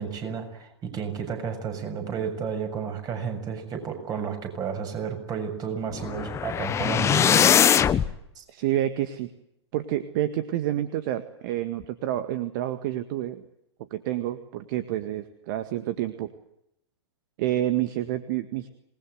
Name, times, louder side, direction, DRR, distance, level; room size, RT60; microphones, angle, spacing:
voice 1, 0.0-7.5 8.4-8.5, right 6 dB, 25° right, 6 dB, 7.2 m, -32 dB
sound 1, 5.9-8.1, left 9 dB, 20° left, 1.1 m, -21 dB
voice 2, 8.5-9.3 9.7-13.4 13.9-16.3 17.4-18.7, right 13 dB, 45° right, 10 dB, 1.9 m, -28 dB
27.0 x 20.5 x 8.1 m, 0.80 s
figure-of-eight pair, 110°, 14 cm